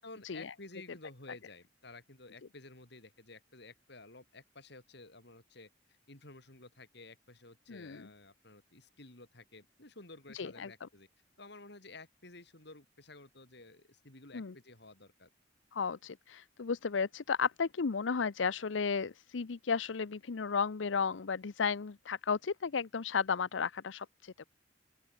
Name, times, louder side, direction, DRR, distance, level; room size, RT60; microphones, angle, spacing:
voice 1, 0.0-11.1 11.4-15.3, left 2 dB, 65° left, 5.6 m, -53 dB
voice 2, 7.7-8.1 10.3-10.7 14.3-14.5 15.7-24.4, left 5 dB, 90° left, 0.6 m, -34 dB
open air
head